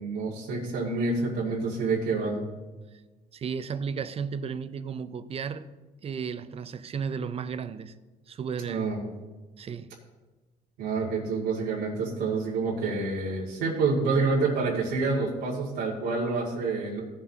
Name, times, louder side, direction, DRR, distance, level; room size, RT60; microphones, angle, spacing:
voice 1, 0.0-2.5 8.6-9.0 10.8-17.0, right 4 dB, 85° right, 2.2 m, -28 dB
voice 2, 3.3-5.7 6.0-7.9 8.3-8.9 9.6-9.9, right 6 dB, 35° right, 0.6 m, -34 dB
16.5 x 7.6 x 2.9 m
cardioid pair, 110°, 17 cm